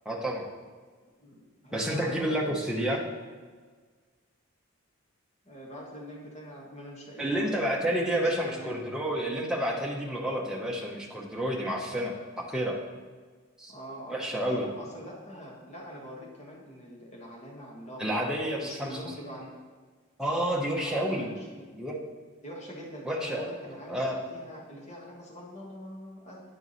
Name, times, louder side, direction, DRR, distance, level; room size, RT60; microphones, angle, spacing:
voice 1, 0.0-0.5 1.7-3.0 7.2-12.8 13.6-13.7 14.1-14.7 18.0-19.0 20.2-21.3 21.7-22.0 23.0-23.5 23.9-24.2, right 1 dB, 5° right, -2 dB, 0.9 m, -30 dB
voice 2, 1.2-3.0 5.4-8.8 13.7-18.0 18.6-19.5 20.8-21.7 22.4-26.4, equal, 30° left, -3 dB, 1.3 m, -44 dB
10.0 x 4.7 x 4.1 m, 1.5 s
head